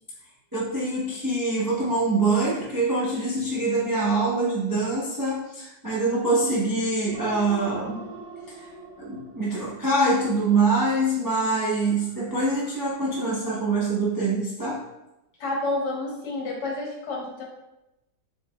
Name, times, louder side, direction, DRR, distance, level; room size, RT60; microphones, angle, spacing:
voice 1, 0.5-8.1 8.5-8.7 9.0-14.8, right 2 dB, 35° right, -6 dB, 0.3 m, -24 dB
sound 1, 7.1-10.3 11.7-12.9, right 3 dB, 75° right, 1.5 m, -43 dB
voice 2, 15.4-17.4, left 2 dB, 65° left, -2 dB, 1.6 m, -29 dB
5.2 x 4.2 x 2.3 m, 0.93 s
omnidirectional pair, 2.0 m